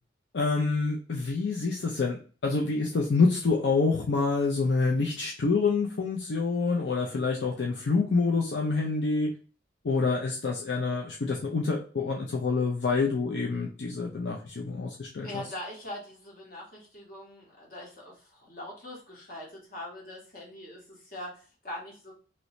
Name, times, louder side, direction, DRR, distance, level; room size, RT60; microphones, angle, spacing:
voice 1, 0.3-9.3 9.8-15.4, left 4 dB, 70° left, 0 dB, 0.5 m, -27 dB
voice 2, 15.2-22.1, left 1 dB, 50° left, -3 dB, 1.4 m, -42 dB
3.0 x 2.7 x 3.0 m, 0.38 s
head